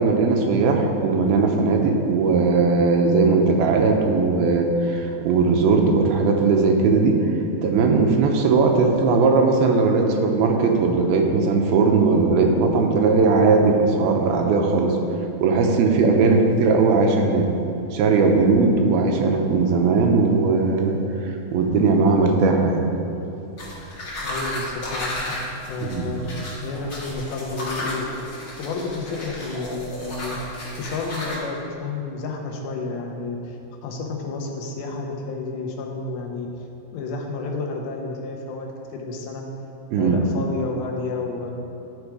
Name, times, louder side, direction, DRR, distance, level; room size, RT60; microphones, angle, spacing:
voice 1, 0.0-7.3 7.6-15.0 15.4-17.5 17.9-22.9 25.8-26.1 39.9-40.2, right 4 dB, 80° right, 3 dB, 2.6 m, -19 dB
sound 1, 23.6-31.4, left 1 dB, 50° left, 1.0 m, -33 dB
voice 2, 24.2-25.4 25.7-30.4 30.7-36.5 36.9-39.5 40.0-41.5, left 3 dB, 80° left, 1 dB, 2.6 m, -31 dB
12.0 x 4.6 x 4.8 m, 2.8 s
omnidirectional pair, 4.4 m